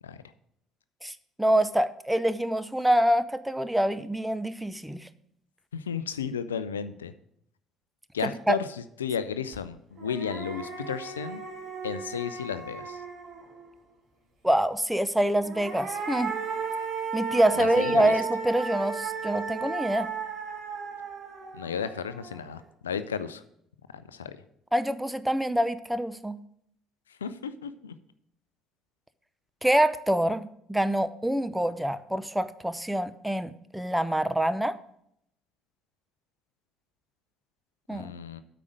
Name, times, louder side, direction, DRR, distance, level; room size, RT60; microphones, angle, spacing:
voice 1, 1.0-5.1 8.5-8.6 14.4-16.3 17.1-20.1 24.7-26.4 29.6-34.8 37.9-38.1, right 1 dB, 5° right, 13 dB, 0.6 m, -26 dB
voice 2, 5.7-7.1 8.1-11.4 11.8-13.0 17.5-18.1 21.5-23.4 23.9-24.4 27.1-27.9 37.9-38.4, left 7 dB, 80° left, 13 dB, 0.4 m, -33 dB
sound 1, 9.5-9.6 10.0-13.7 15.3-22.6, right 6 dB, 45° right, 2.8 m, -35 dB
8.5 x 5.0 x 7.7 m, 0.72 s
figure-of-eight pair, 55°, 0 cm